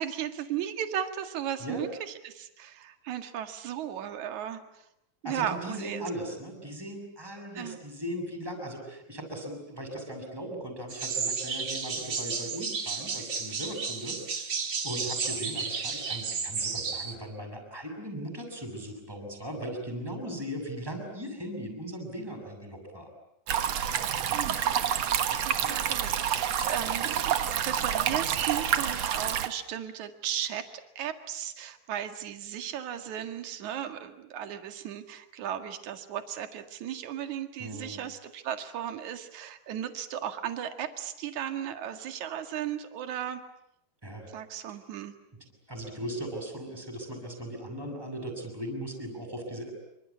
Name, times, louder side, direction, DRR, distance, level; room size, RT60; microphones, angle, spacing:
voice 1, 0.0-4.8 5.2-6.0 7.5-7.8 24.6-24.8 25.5-30.6 31.0-43.4 44.3-45.1, right 10 dB, 50° right, 7 dB, 2.7 m, -36 dB
voice 2, 5.2-14.6 14.8-23.1 25.6-25.7 37.6-38.0 44.0-44.3 45.7-49.7, equal, 5° right, 4 dB, 6.5 m, -38 dB
sound 1, 10.9-17.1, right 5 dB, 35° right, 2.0 m, -33 dB
sound 2, 23.5-29.5, right 9 dB, 85° right, 1.4 m, -28 dB
27.0 x 26.0 x 8.5 m, 0.81 s
omnidirectional pair, 5.0 m